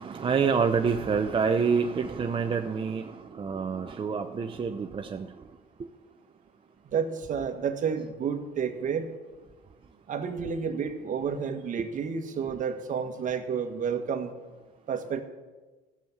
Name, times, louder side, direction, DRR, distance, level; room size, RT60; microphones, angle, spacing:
voice 1, 0.0-5.3 11.8-11.9, right 5 dB, 30° right, 0.7 m, -27 dB
voice 2, 6.9-9.1 10.1-14.3 14.9-15.2, right 6 dB, 50° right, 1.7 m, -30 dB
14.0 x 7.3 x 9.7 m
cardioid pair, 110°, 17 cm